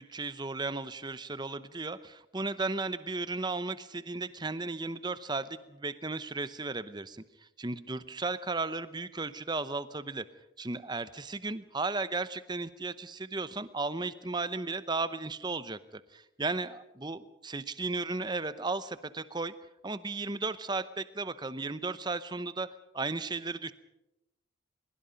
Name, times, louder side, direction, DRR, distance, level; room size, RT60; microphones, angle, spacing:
voice 1, 0.0-10.3 10.6-19.6 19.8-23.7, right 3 dB, 20° right, 14 dB, 0.8 m, -35 dB
22.5 x 22.5 x 5.2 m, 0.89 s
head